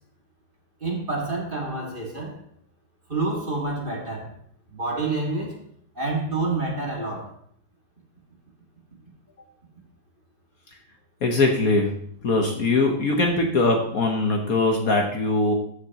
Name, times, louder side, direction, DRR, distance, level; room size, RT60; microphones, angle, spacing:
voice 1, 0.8-2.4 3.1-4.3 4.7-5.6 6.0-7.3, right 3 dB, 30° right, -2 dB, 2.0 m, -28 dB
voice 2, 11.2-11.9 12.2-15.5, left 2 dB, 55° left, 2 dB, 1.4 m, -21 dB
13.5 x 6.6 x 2.9 m, 0.65 s
omnidirectional pair, 2.0 m